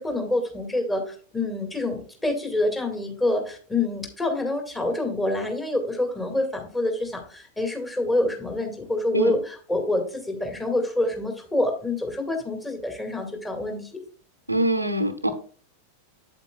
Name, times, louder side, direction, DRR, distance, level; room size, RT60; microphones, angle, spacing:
voice 1, 0.0-13.9, left 2 dB, 10° left, 3 dB, 2.0 m, -27 dB
voice 2, 14.5-15.3, right 1 dB, 85° right, 9 dB, 0.9 m, -23 dB
8.3 x 8.1 x 2.3 m, 0.42 s
figure-of-eight pair, 90°, 0 cm